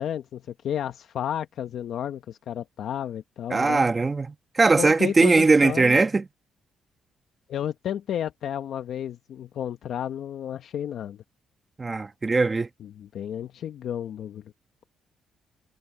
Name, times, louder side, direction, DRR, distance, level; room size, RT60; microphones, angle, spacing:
voice 1, 0.0-3.8 4.8-6.0 7.5-11.2 12.8-14.4, left 10 dB, 70° left, 1.1 m, -32 dB
voice 2, 3.5-6.2 11.8-12.7, right 3 dB, 25° right, 1.4 m, -20 dB
cardioid pair, 90°, 0 cm